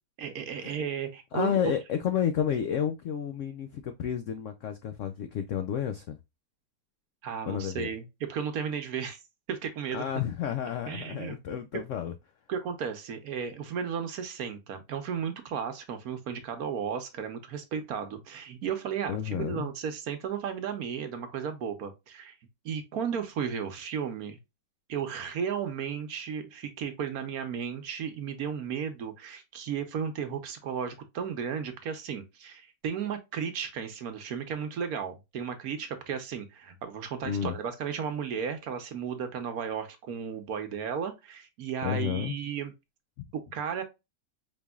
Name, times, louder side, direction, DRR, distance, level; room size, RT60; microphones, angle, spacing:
voice 1, 0.2-1.7 7.2-9.2 9.5-10.0 10.9-11.4 12.5-22.4 22.6-24.4 24.9-42.7 43.3-43.8, right 7 dB, 65° right, 1.1 m, -34 dB
voice 2, 1.3-6.2 7.5-7.9 9.9-12.1 19.1-19.7 37.2-37.6 41.8-42.3 43.2-43.3, left 9 dB, 80° left, 0.6 m, -31 dB
5.2 x 3.4 x 2.2 m
omnidirectional pair, 1.9 m